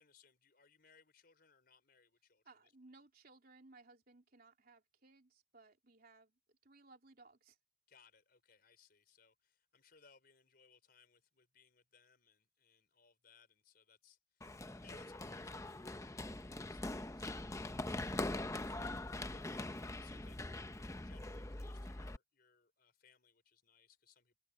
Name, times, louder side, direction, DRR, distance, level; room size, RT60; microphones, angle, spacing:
voice 1, 0.0-2.7 7.9-19.0 19.3-24.4, left 5 dB, 50° left, 4.8 m, -68 dB
voice 2, 2.4-7.6, right 3 dB, 50° right, 3.3 m, -62 dB
Run, 14.4-22.2, left 2 dB, 15° left, 0.7 m, -43 dB
head